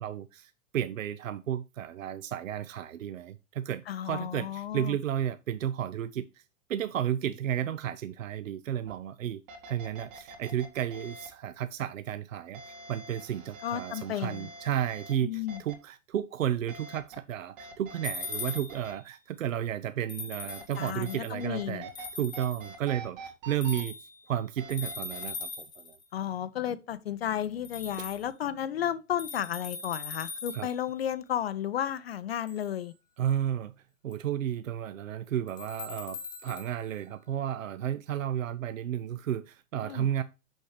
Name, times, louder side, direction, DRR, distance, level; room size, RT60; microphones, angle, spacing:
voice 1, 0.0-6.4 6.7-26.0 28.0-28.1 30.5-30.7 33.2-33.7 34.0-40.2, right 10 dB, 75° right, 0.5 m, -33 dB
voice 2, 3.9-5.0 13.6-14.5 15.2-15.6 20.8-21.8 26.1-32.9 39.8-40.1, left 10 dB, 50° left, 0.5 m, -33 dB
sound 1, 8.9-9.0 9.5-11.3 12.5-15.1 15.5-15.7 16.7-17.2 17.6-18.9 20.5-22.1 22.3-23.8 24.6-25.2, right 3 dB, 40° right, 1.8 m, -46 dB
sound 2, 18.0-18.9 20.1-21.4 21.9-22.7 23.6-24.2 24.7-26.0 27.6-28.2 29.2-30.8 32.5-32.7 34.1-34.2 35.5-36.7, left 4 dB, 10° left, 0.7 m, -40 dB
6.3 x 6.1 x 3.2 m
figure-of-eight pair, 105°, 40 cm